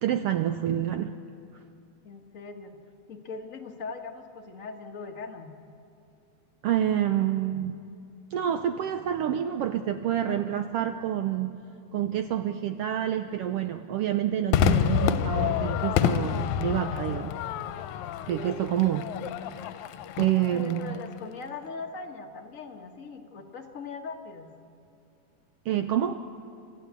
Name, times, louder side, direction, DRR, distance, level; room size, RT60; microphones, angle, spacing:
voice 1, 0.0-1.1 6.6-7.8 8.3-11.6 11.9-17.3 18.3-19.1 20.2-20.9 25.7-26.2, right 11 dB, 80° right, 8 dB, 1.4 m, -27 dB
voice 2, 2.0-2.8 3.1-5.5 10.1-10.6 20.5-24.5, left 4 dB, 40° left, 3 dB, 1.2 m, -40 dB
Crowd / Fireworks, 14.5-21.1, left 9 dB, 80° left, 2.1 m, -28 dB
28.5 x 13.5 x 8.3 m, 2.5 s
omnidirectional pair, 3.3 m